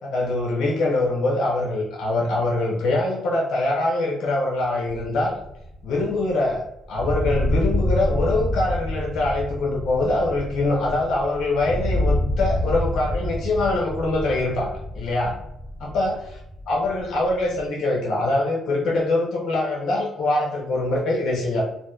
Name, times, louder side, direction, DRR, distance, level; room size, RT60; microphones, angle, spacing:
voice 1, 0.0-5.4 5.8-6.6 6.9-15.3 15.8-16.2 16.7-21.6, left 2 dB, 80° left, -1 dB, 0.6 m, -23 dB
sound 1, 5.1-6.7 6.9-17.7, left 1 dB, 35° left, 1.1 m, -28 dB
2.7 x 2.1 x 2.3 m, 0.79 s
cardioid pair, 90°, 0 cm